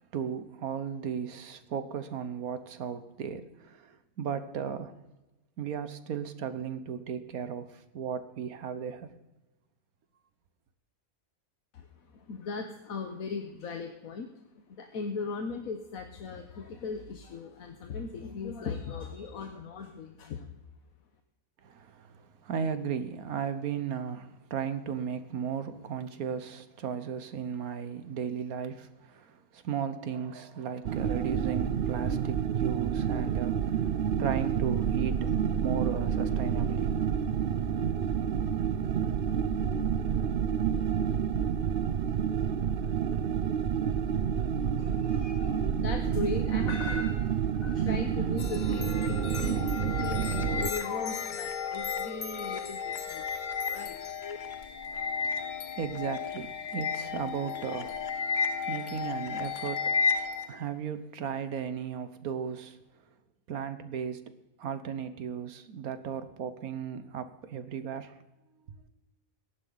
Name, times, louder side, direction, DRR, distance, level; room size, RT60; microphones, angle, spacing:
voice 1, 0.1-4.9 5.6-9.1 21.6-37.4 54.9-58.0 58.5-62.8 63.5-64.3 64.6-68.2 68.5-68.9, right 7 dB, 90° right, 1.5 m, -36 dB
voice 2, 11.7-20.5 44.8-53.2 53.7-54.4, left 4 dB, 75° left, 1.5 m, -38 dB
sound 1, 30.8-50.7, right 8 dB, 55° right, 0.6 m, -29 dB
sound 2, 48.4-60.5, left 6 dB, 45° left, 0.7 m, -33 dB
22.0 x 11.0 x 4.0 m
omnidirectional pair, 1.5 m